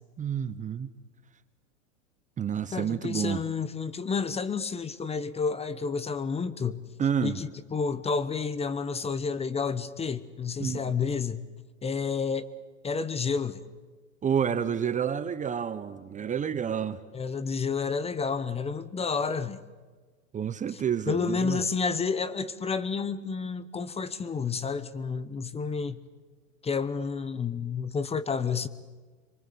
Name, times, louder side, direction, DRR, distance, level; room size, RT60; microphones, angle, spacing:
voice 1, 0.2-0.9 2.4-3.4 7.0-7.4 10.6-10.8 14.2-17.0 20.3-21.6, right 8 dB, 20° right, 0.9 m, -29 dB
voice 2, 2.7-6.8 7.2-11.4 11.8-12.5 12.8-13.6 17.1-19.6 20.7-20.8 21.1-26.0 26.6-28.7, left 5 dB, 15° left, 1.1 m, -30 dB
27.0 x 23.5 x 8.5 m
hypercardioid pair, 120°, 38 cm